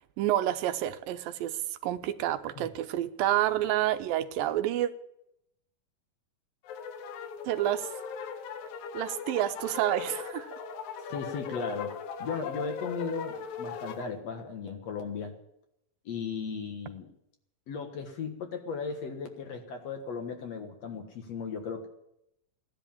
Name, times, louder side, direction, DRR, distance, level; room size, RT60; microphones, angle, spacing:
voice 1, 0.2-4.9 7.5-7.9 8.9-10.5, right 13 dB, 90° right, 10 dB, 2.5 m, -29 dB
sound 1, 6.6-14.1, left 6 dB, 85° left, 2.9 m, -39 dB
voice 2, 11.0-15.4 16.1-17.1 17.7-21.9, left 5 dB, 55° left, 5 dB, 2.3 m, -36 dB
17.0 x 11.0 x 7.1 m, 0.80 s
omnidirectional pair, 4.0 m